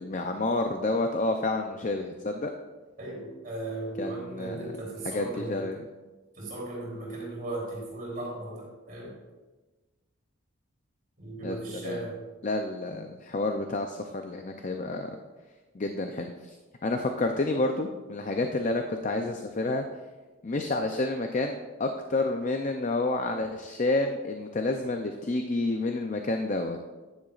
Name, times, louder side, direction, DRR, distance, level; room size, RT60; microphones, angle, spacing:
voice 1, 0.0-2.5 4.0-4.6 5.0-5.8 11.4-11.6 11.8-12.0 12.4-15.2 15.7-16.5 16.8-19.8 20.4-26.8, left 2 dB, 35° left, 5 dB, 0.5 m, -29 dB
voice 2, 3.0-5.6 6.3-9.2 11.2-12.2, right 2 dB, 45° right, -5 dB, 3.2 m, -37 dB
10.5 x 10.0 x 2.4 m, 1.2 s
head